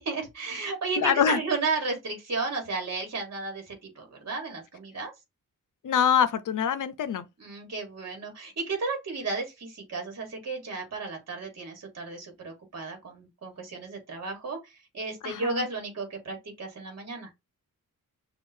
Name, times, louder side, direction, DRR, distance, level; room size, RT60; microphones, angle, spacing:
voice 1, 0.0-5.1 7.4-17.3, right 3 dB, 50° right, 1.5 m, -33 dB
voice 2, 1.0-1.4 5.8-7.3 15.2-15.7, left 8 dB, 65° left, 0.6 m, -24 dB
6.4 x 2.4 x 2.7 m
wide cardioid pair, 130°, 33 cm